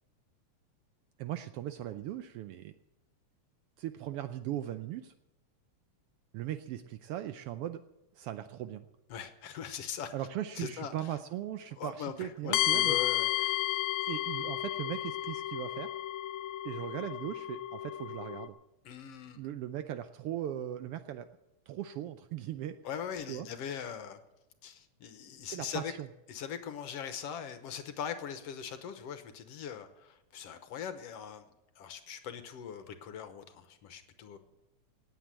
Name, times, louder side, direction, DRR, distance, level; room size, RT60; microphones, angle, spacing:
voice 1, 1.2-2.7 3.8-5.1 6.3-7.8 8.1-8.9 10.1-13.0 14.1-16.0 16.6-18.5 19.4-21.3 21.7-22.8 23.3-23.5 25.5-26.1, right 12 dB, 80° right, 9 dB, 1.3 m, -38 dB
voice 2, 9.1-10.1 10.6-10.9 11.8-13.8 18.9-19.4 22.8-24.2 24.6-25.9 26.3-31.5 31.8-34.4, left 8 dB, 65° left, 9 dB, 1.8 m, -41 dB
sound 1, 12.5-18.5, left 14 dB, 90° left, 2.1 m, -32 dB
18.5 x 8.3 x 7.6 m, 0.93 s
omnidirectional pair, 3.3 m